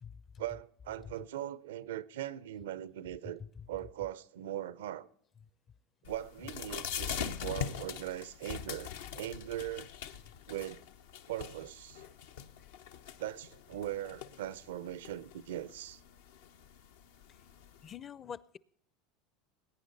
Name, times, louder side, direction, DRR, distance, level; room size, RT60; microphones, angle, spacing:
voice 1, 0.4-3.4 3.7-5.1 6.0-9.9 10.5-10.8 11.3-12.0 13.2-16.0, right 12 dB, 85° right, 0.6 m, -40 dB
sound 1, 6.0-17.9, left 9 dB, 80° left, 0.8 m, -43 dB
voice 2, 17.8-18.6, left 7 dB, 35° left, 0.5 m, -45 dB
21.0 x 9.5 x 4.1 m
supercardioid pair, 100°, 0 cm